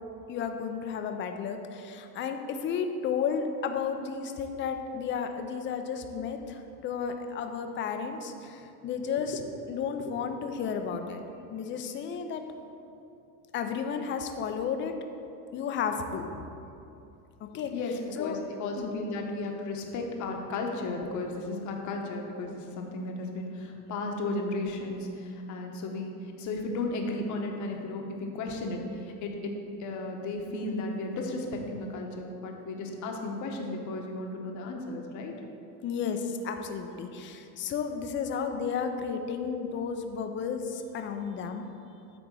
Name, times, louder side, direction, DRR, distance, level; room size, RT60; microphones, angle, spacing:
voice 1, 0.3-9.4 9.7-11.2 11.5-12.4 13.5-14.9 15.5-16.4 17.4-17.7 18.2-18.4 18.8-18.9 35.8-41.7, left 6 dB, 30° left, 6 dB, 0.5 m, -33 dB
voice 2, 17.7-29.5 29.8-35.3, left 2 dB, 45° left, 2 dB, 1.0 m, -34 dB
8.9 x 3.5 x 6.2 m, 2.7 s
cardioid pair, 145°, 42 cm